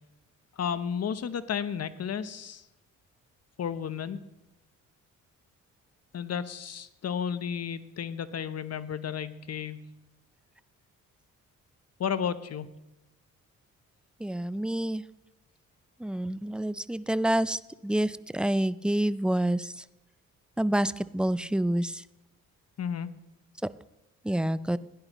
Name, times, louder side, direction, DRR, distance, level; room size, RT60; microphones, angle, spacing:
voice 1, 0.6-2.6 3.6-4.2 6.1-9.8 12.0-12.7 22.8-23.1, left 7 dB, 55° left, 14 dB, 0.9 m, -32 dB
voice 2, 14.2-15.0 16.0-19.8 20.6-22.0 24.2-24.8, right 1 dB, 5° right, 17 dB, 0.4 m, -28 dB
16.0 x 10.5 x 3.0 m, 0.93 s
cardioid pair, 70°, 31 cm